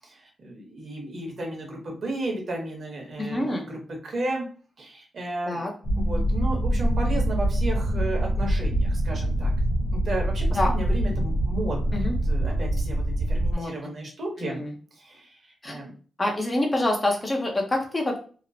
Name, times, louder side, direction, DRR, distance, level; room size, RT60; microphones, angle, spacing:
voice 1, 0.0-4.4 4.8-5.6 6.0-9.5 9.9-12.0 12.3-14.6 15.0-15.4 15.6-15.9, right 1 dB, 55° right, 0 dB, 1.0 m, -33 dB
voice 2, 3.2-3.7 5.5-5.7 10.5-10.7 11.9-12.1 13.5-13.7 14.4-14.7 15.6-15.8 16.2-18.2, left 1 dB, 20° left, 1 dB, 0.5 m, -26 dB
sound 1, 5.8-13.6, right 1 dB, 75° left, 0.7 m, -24 dB
2.9 x 2.0 x 2.6 m, 0.40 s
wide cardioid pair, 135°, 0 cm